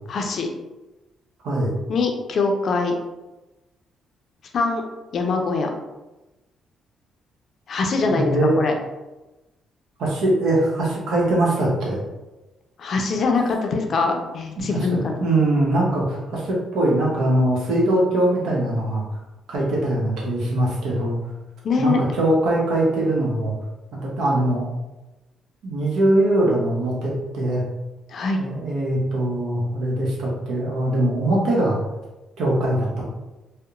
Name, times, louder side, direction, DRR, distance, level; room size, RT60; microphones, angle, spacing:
voice 1, 0.1-0.5 1.9-2.9 4.5-4.8 5.1-5.7 7.7-8.7 12.8-15.2 21.6-22.0 28.1-28.4, left 4 dB, 55° left, 3 dB, 0.4 m, -23 dB
voice 2, 8.1-8.6 10.0-12.0 14.6-19.0 19.5-21.2 21.8-23.5 23.9-24.7 25.6-27.6 28.4-31.8 32.4-33.1, right 1 dB, 80° right, -3 dB, 0.8 m, -22 dB
2.8 x 2.1 x 2.4 m, 1.1 s
cardioid pair, 90°, 0 cm